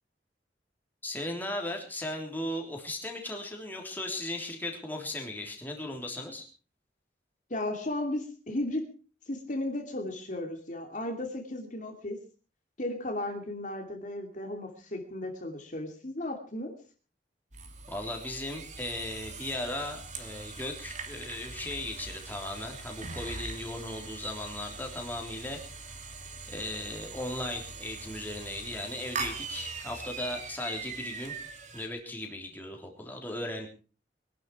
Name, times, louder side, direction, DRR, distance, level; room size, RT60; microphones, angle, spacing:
voice 1, 1.0-6.5 17.9-26.0 26.5-31.3 31.7-33.7, left 1 dB, 10° left, 1 dB, 3.5 m, -37 dB
voice 2, 7.5-8.9 9.3-12.2 12.8-16.7, left 1 dB, 45° left, 3 dB, 2.6 m, -35 dB
sound 1, 17.5-31.9, right 4 dB, 40° right, 3.1 m, -42 dB
22.5 x 12.0 x 4.8 m, 0.37 s
head